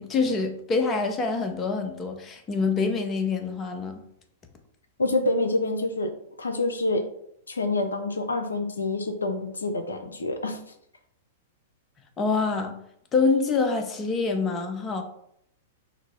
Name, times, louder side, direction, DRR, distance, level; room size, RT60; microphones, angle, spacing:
voice 1, 0.0-4.0 12.2-12.8 13.1-15.0, left 4 dB, 25° left, 0.7 m, -26 dB
voice 2, 5.0-7.1 7.5-10.6, left 2 dB, 80° left, 0.5 m, -27 dB
5.8 x 2.0 x 4.3 m
figure-of-eight pair, 105°, 0 cm